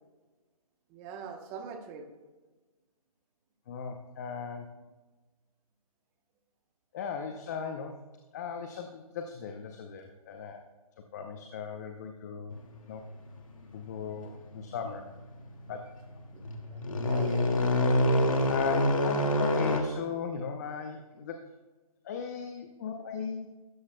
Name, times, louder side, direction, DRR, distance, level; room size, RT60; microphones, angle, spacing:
voice 1, 0.9-2.0 16.3-17.7, right 6 dB, 15° right, 5 dB, 0.9 m, -43 dB
voice 2, 3.7-4.7 6.9-7.9 8.3-10.6 11.1-12.6 12.9-13.0 13.7-15.1 15.7-15.9 18.5-21.4 22.0-23.6, left 6 dB, 30° left, 5 dB, 0.7 m, -37 dB
sound 1, 12.5-13.0 13.5-13.7 14.3-14.4 14.7-15.2 15.6-15.8 16.2-19.8, left 1 dB, 65° left, 1.8 m, -26 dB
14.0 x 13.0 x 2.2 m, 1.2 s
hypercardioid pair, 155°, 19 cm